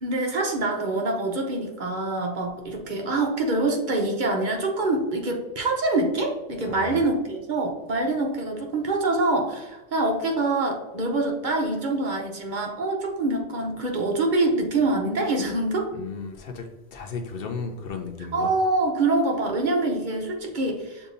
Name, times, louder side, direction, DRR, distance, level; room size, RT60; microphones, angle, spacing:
voice 1, 0.0-15.9 18.3-21.1, right 2 dB, 45° right, 1 dB, 0.8 m, -25 dB
voice 2, 6.7-7.0 15.9-18.5, left 4 dB, 60° left, 3 dB, 0.7 m, -35 dB
6.7 x 2.7 x 2.6 m, 1.1 s
omnidirectional pair, 1.2 m